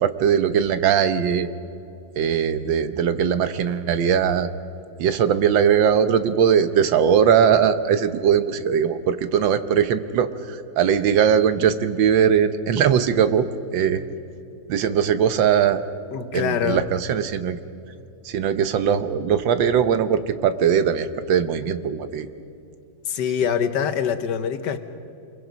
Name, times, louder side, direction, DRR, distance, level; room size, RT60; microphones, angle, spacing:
voice 1, 0.0-1.5 2.2-4.5 5.0-14.0 14.7-15.8 16.3-17.6 18.2-22.3, right 8 dB, 75° right, 11 dB, 1.6 m, -20 dB
voice 2, 16.1-16.9 23.1-24.8, left 7 dB, 65° left, 10 dB, 1.5 m, -24 dB
27.5 x 22.0 x 5.2 m, 2.8 s
omnidirectional pair, 2.1 m